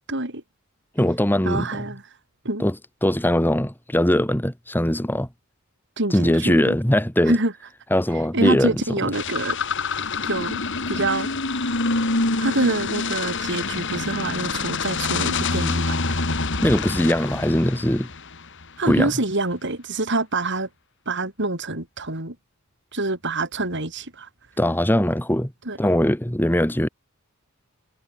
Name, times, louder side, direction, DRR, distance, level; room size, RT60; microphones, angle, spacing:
voice 1, 0.1-0.4 1.4-2.0 2.4-2.6 6.0-6.8 7.3-7.5 8.3-9.6 10.2-10.6 10.9-11.3 12.4-16.2 18.8-20.7 21.1-22.4 22.9-24.3 25.6-25.8, right 2 dB, 55° right, 4.9 m, -26 dB
voice 2, 1.0-1.7 2.6-2.7 3.0-5.3 6.1-7.4 7.9-8.8 9.0-9.1 16.6-18.1 18.8-19.1 24.6-25.5 25.8-26.9, equal, 10° left, 2.1 m, -21 dB
sound 1, 9.1-18.7, left 3 dB, 55° left, 3.0 m, -26 dB
head